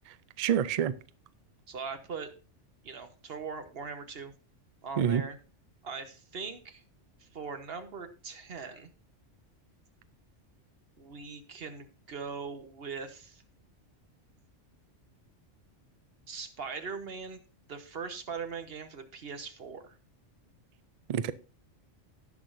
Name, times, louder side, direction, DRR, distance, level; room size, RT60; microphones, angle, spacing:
voice 1, 0.4-0.9 5.0-5.2 21.1-21.3, right 8 dB, 75° right, 16 dB, 0.3 m, -26 dB
voice 2, 1.7-2.3 2.8-4.3 4.8-5.4 5.8-6.8 7.2-8.9 11.0-13.4 16.3-17.4 17.7-19.9, right 5 dB, 55° right, 9 dB, 1.3 m, -40 dB
17.5 x 6.1 x 2.6 m, 0.34 s
omnidirectional pair, 1.3 m